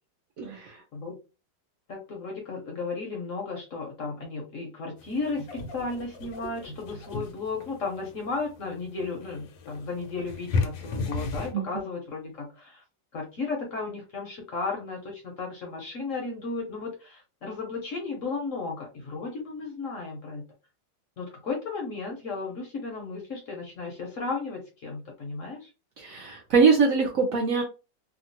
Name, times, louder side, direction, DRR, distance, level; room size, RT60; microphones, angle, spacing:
voice 1, 0.4-0.8 11.5-11.6 26.0-27.6, right 5 dB, 65° right, 2 dB, 0.8 m, -23 dB
voice 2, 1.9-12.8 13.1-20.4 21.2-25.7, left 4 dB, 55° left, 0 dB, 1.0 m, -34 dB
sound 1, 5.0-11.5, left 3 dB, 80° left, 1.3 m, -35 dB
3.0 x 2.3 x 2.8 m, 0.31 s
omnidirectional pair, 1.9 m